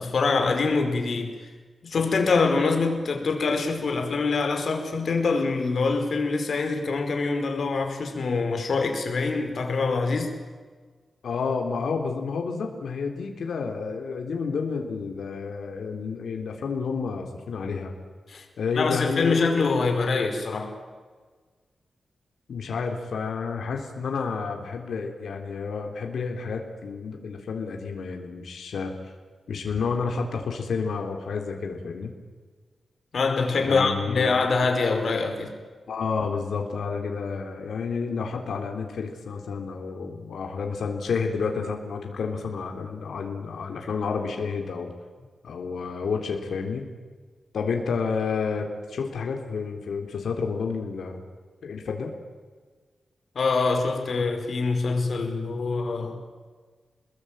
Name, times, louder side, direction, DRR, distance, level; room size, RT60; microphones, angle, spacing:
voice 1, 0.0-1.3 1.8-10.3 18.3-18.4 18.8-20.7 33.1-35.5 53.3-56.2, left 4 dB, 55° left, 5 dB, 5.1 m, -24 dB
voice 2, 11.2-17.9 18.6-19.5 22.5-28.9 29.5-32.1 33.6-34.3 35.9-44.9 45.4-46.9 47.5-51.2 51.6-52.1, left 5 dB, 85° left, 3 dB, 3.7 m, -30 dB
29.0 x 21.0 x 9.1 m, 1.5 s
wide cardioid pair, 145°, 0 cm